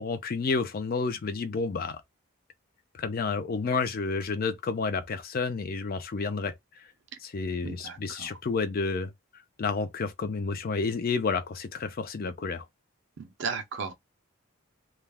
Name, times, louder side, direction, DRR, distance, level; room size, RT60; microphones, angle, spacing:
voice 1, 0.0-2.0 2.9-6.5 7.2-9.1 9.6-12.6, left 4 dB, 45° left, 0.4 m, -30 dB
voice 2, 7.6-8.3 13.2-13.9, right 5 dB, 55° right, 0.4 m, -35 dB
2.3 x 2.0 x 3.3 m
head